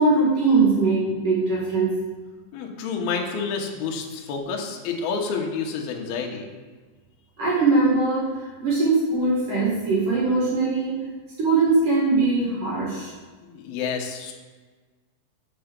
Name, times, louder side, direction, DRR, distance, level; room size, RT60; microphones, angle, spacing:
voice 1, 0.0-2.0 7.4-11.0 11.4-13.1, right 3 dB, 55° right, -6 dB, 2.7 m, -21 dB
voice 2, 2.5-6.5 13.4-14.3, left 5 dB, 75° left, 1 dB, 2.3 m, -29 dB
7.1 x 6.8 x 5.2 m, 1.4 s
omnidirectional pair, 5.8 m